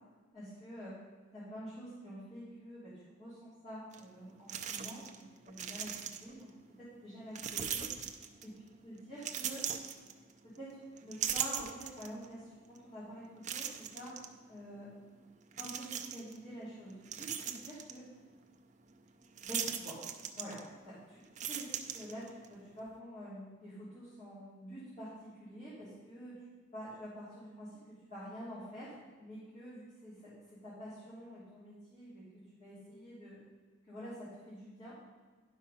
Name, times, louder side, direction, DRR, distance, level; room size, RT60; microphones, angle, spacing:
voice 1, 0.3-1.0 1.3-5.1 5.4-6.5 6.8-7.9 8.4-9.7 10.4-14.1 14.5-14.9 15.6-18.1 19.4-20.0 20.3-26.4 26.7-33.4 33.8-35.0, equal, 35° left, -12 dB, 3.3 m, -48 dB
sound 1, 3.9-4.0 4.5-5.2 5.5-6.4 7.4-8.6 9.2-10.6 11.0-12.3 12.8-12.9 13.4-14.3 15.5-16.4 16.8-18.0 19.4-20.9 21.2-22.5, right 8 dB, 40° right, 0.5 m, -39 dB
10.5 x 5.5 x 5.6 m, 1.4 s
head